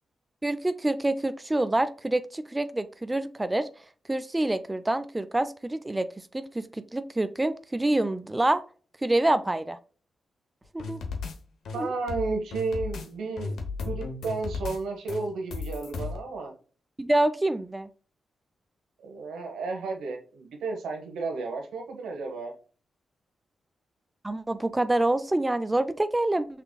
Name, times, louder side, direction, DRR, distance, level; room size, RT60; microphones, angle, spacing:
voice 1, 0.4-3.7 4.1-6.1 6.3-8.6 9.0-9.8 10.7-11.0 11.7-11.9 17.0-17.9 24.2-26.5, right 1 dB, 15° right, 11 dB, 0.3 m, -26 dB
sound 1, 10.8-11.3 11.7-13.1 13.4-14.8 15.1-16.2, left 4 dB, 85° left, 0.7 m, -35 dB
voice 2, 11.7-13.6 13.9-16.5 19.0-22.5, right 3 dB, 90° right, 3 dB, 0.9 m, -32 dB
5.8 x 3.4 x 2.2 m, 0.40 s
cardioid pair, 65°, 0 cm